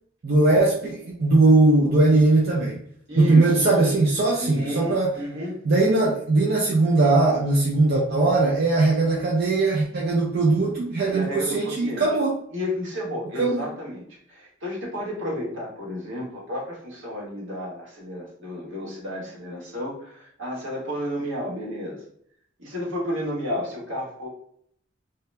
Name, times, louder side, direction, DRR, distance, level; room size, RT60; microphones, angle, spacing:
voice 1, 0.2-2.8 3.2-5.1 5.6-12.4 13.4-13.7, right 2 dB, 55° right, -3 dB, 0.5 m, -20 dB
voice 2, 3.1-3.7 4.4-5.6 6.0-6.1 11.1-12.1 12.5-22.0 22.6-24.3, left 1 dB, 80° right, -4 dB, 1.3 m, -32 dB
2.8 x 2.2 x 3.3 m, 0.66 s
head